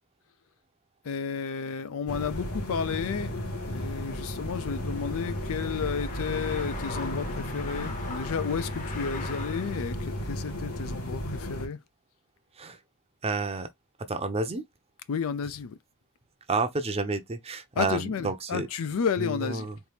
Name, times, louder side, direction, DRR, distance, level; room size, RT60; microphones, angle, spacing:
voice 1, 1.0-3.4 3.7-11.8 15.1-15.8 17.8-19.7, left 6 dB, 70° left, 0.4 m, -32 dB
sound 1, 2.1-11.7, equal, 85° left, 2.0 m, -34 dB
sound 2, 3.0-10.0, left 3 dB, 35° left, 0.9 m, -42 dB
voice 2, 13.2-13.7 14.1-14.6 16.5-18.7 19.2-19.8, right 3 dB, 30° right, 0.7 m, -30 dB
4.4 x 2.7 x 3.3 m
head